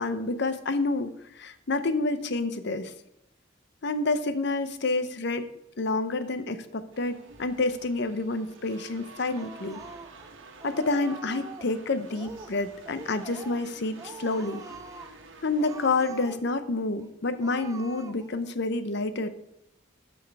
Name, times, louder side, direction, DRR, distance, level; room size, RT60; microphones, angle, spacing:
voice 1, 0.0-2.9 3.8-5.5 5.8-9.8 10.6-14.6 15.4-19.3, left 3 dB, 65° left, 12 dB, 0.8 m, -28 dB
sound 1, 6.9-16.1, right 3 dB, 85° right, 1.4 m, -50 dB
Speech, 9.4-10.3 10.6-11.7 12.1-12.6 12.8-13.7 14.0-15.2 15.5-16.6 17.0-17.1 17.4-18.4, right 3 dB, 20° right, 0.6 m, -44 dB
11.0 x 6.3 x 4.7 m, 0.81 s
head